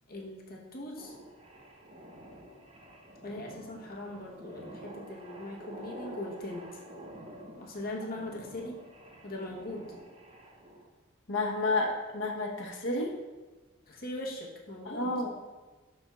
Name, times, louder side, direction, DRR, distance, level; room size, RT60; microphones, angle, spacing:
voice 1, 0.1-1.2 3.2-6.8 7.5-8.8 9.2-9.9 13.9-15.2, left 1 dB, 50° left, -2 dB, 1.0 m, -40 dB
sound 1, 1.0-10.9, right 1 dB, 30° right, 0.7 m, -48 dB
voice 2, 11.3-13.1 14.8-15.3, left 2 dB, 70° left, 0 dB, 1.0 m, -30 dB
11.0 x 4.4 x 2.4 m, 1.2 s
head